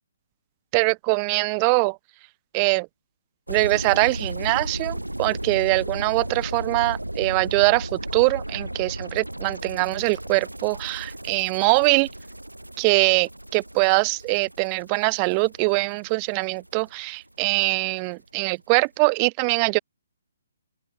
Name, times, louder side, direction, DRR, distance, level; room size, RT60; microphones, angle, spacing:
voice 1, 0.7-2.0 2.5-2.9 3.5-12.1 12.8-19.8, right 36 dB, 25° right, 1.1 m, -22 dB
sound 1, 3.5-17.5 17.8-18.0, right 1 dB, 85° right, 2.7 m, -35 dB
open air
figure-of-eight pair, 135°, 0 cm